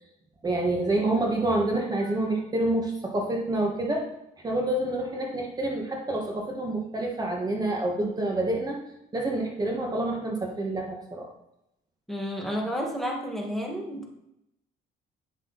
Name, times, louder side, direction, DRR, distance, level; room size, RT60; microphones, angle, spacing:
voice 1, 0.4-4.1 4.4-8.8 9.1-11.3, right 1 dB, 25° right, 1 dB, 1.5 m, -27 dB
voice 2, 12.1-14.1, equal, ahead, 0 dB, 1.6 m, -31 dB
9.8 x 6.1 x 4.0 m, 0.83 s
cardioid pair, 110°, 17 cm